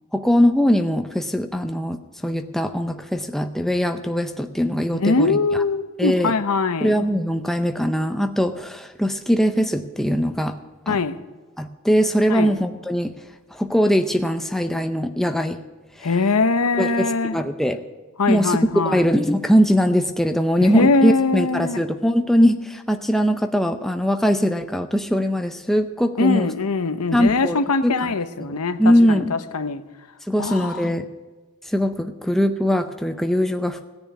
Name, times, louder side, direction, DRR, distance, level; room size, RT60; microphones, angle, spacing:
voice 1, 0.1-5.4 6.0-6.3 6.8-10.6 10.9-11.0 11.6-13.1 13.5-15.6 16.0-16.1 16.8-17.8 18.3-18.6 18.9-26.5 27.1-28.1 28.4-28.5 28.8-29.3 30.3-31.1 31.7-33.9, equal, ahead, 0.6 m, -21 dB
voice 2, 4.9-7.0 10.9-11.2 12.3-12.5 16.0-17.4 18.2-19.1 20.6-21.8 26.2-29.8 30.4-30.9, left 3 dB, 90° left, 0.9 m, -22 dB
17.0 x 7.0 x 9.2 m
head